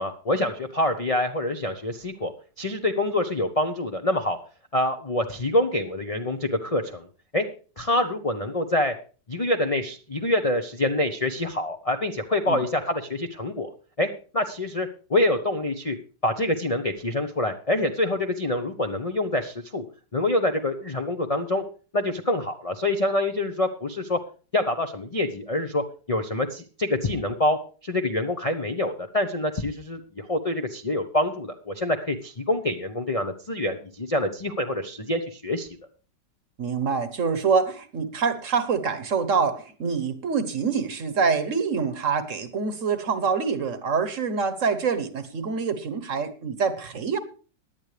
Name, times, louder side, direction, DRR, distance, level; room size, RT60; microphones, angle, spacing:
voice 1, 0.0-2.3 2.6-4.4 4.7-7.1 7.3-7.4 7.8-8.9 9.3-13.7 14.0-14.1 14.3-16.0 16.2-19.8 20.1-21.6 21.9-24.2 24.5-27.6 27.8-35.7, left 1 dB, 40° left, 4 dB, 0.5 m, -26 dB
voice 2, 36.6-47.2, right 5 dB, 50° right, 11 dB, 1.3 m, -25 dB
17.5 x 10.5 x 3.3 m, 0.37 s
omnidirectional pair, 2.0 m